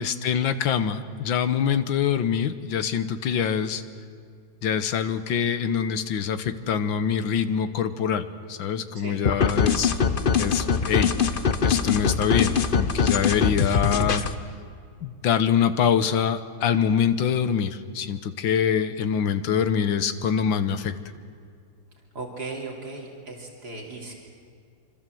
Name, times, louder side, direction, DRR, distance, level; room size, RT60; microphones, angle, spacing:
voice 1, 0.0-3.8 4.6-9.9 10.4-11.1 11.6-14.3 15.0-20.9, left 8 dB, 85° left, 11 dB, 1.8 m, -24 dB
sound 1, 9.3-14.3, left 6 dB, 40° left, 0.8 m, -22 dB
voice 2, 22.1-24.1, right 3 dB, 55° right, -1 dB, 3.6 m, -37 dB
26.0 x 25.5 x 7.8 m, 2.3 s
omnidirectional pair, 2.1 m